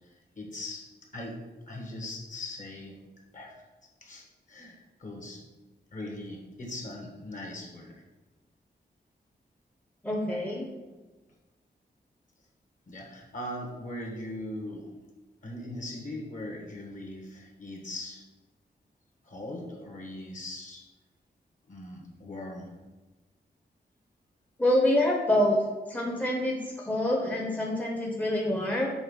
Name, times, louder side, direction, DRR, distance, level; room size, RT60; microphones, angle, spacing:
voice 1, 0.3-3.0 3.3-3.5 4.0-5.4 5.9-8.0 12.9-14.9 15.4-18.2 19.2-20.8 21.7-22.7, left 1 dB, 45° left, 0 dB, 1.6 m, -40 dB
voice 2, 10.0-10.7 24.6-25.6 25.9-28.9, left 1 dB, 10° left, -2 dB, 0.9 m, -26 dB
7.1 x 3.7 x 5.6 m, 1.2 s
wide cardioid pair, 135°, 18 cm